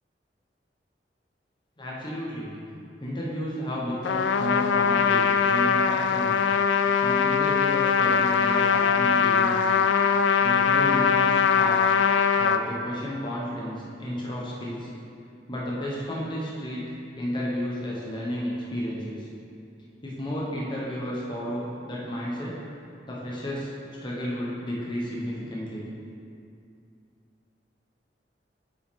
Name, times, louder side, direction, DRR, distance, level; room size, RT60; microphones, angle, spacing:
voice 1, 1.8-2.5 3.0-6.5 6.9-9.7 10.4-12.0 12.4-14.9 15.5-19.3 20.0-22.6 23.1-23.7 24.0-25.8, equal, 25° left, -5 dB, 1.1 m, -32 dB
Trumpet, 4.0-12.6, left 6 dB, 85° left, 0.3 m, -22 dB
8.4 x 5.6 x 3.7 m, 2.4 s
head